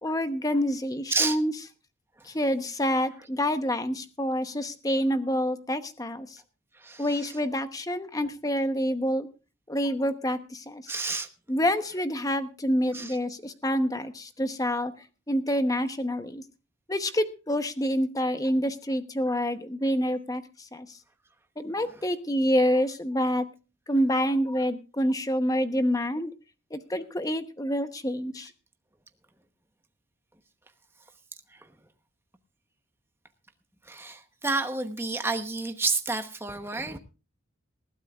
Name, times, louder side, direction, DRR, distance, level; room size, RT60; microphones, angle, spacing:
voice 1, 0.0-1.5 2.2-6.4 7.0-9.3 9.7-10.8 11.5-14.9 15.3-16.4 16.9-21.0 21.6-23.4 23.9-26.3 26.7-28.5, equal, 15° left, 9 dB, 0.9 m, -27 dB
voice 2, 6.7-7.3 10.9-11.3 12.9-13.1 31.5-31.7 33.8-37.0, right 3 dB, 10° right, 7 dB, 1.0 m, -30 dB
20.5 x 15.0 x 2.4 m, 0.32 s
head